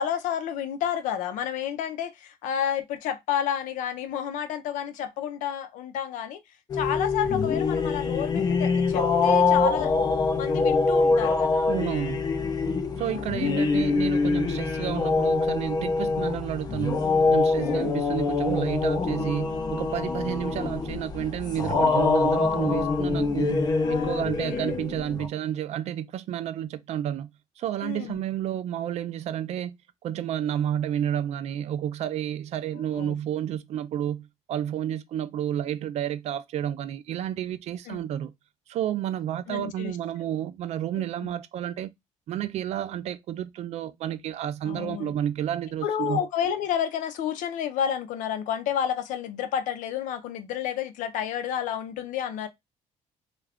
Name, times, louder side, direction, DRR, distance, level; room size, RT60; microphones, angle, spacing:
voice 1, 0.0-6.4 6.7-10.0 10.4-11.7 12.9-13.7 17.6-17.9 23.8-24.8 27.8-28.2 32.9-33.2 37.9-38.0 39.5-40.0 41.0-41.3 44.7-45.1 45.8-52.5, left 9 dB, 80° left, 0.5 m, -31 dB
sound 1, 6.7-25.3, left 4 dB, 30° left, 0.5 m, -25 dB
voice 2, 11.7-12.3 13.0-27.3 27.6-29.7 30.0-38.3 38.7-41.9 42.3-46.2, right 10 dB, 55° right, 0.4 m, -30 dB
2.4 x 2.2 x 3.4 m
cardioid pair, 135°, 13 cm